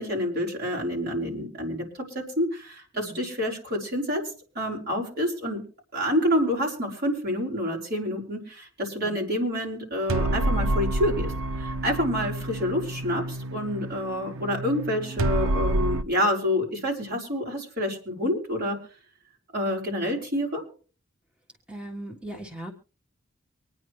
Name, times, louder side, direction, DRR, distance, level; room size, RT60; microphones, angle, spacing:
voice 1, 0.0-1.8 2.1-4.2 4.6-5.6 5.9-18.8 19.5-20.6, equal, 50° right, 0 dB, 5.3 m, -28 dB
voice 2, 2.9-3.3 9.0-9.3 14.2-14.5 21.7-22.7, right 1 dB, 5° right, 1 dB, 1.4 m, -41 dB
sound 1, 10.1-16.0, right 1 dB, 90° right, 0.7 m, -28 dB
25.0 x 9.8 x 3.1 m, 0.38 s
head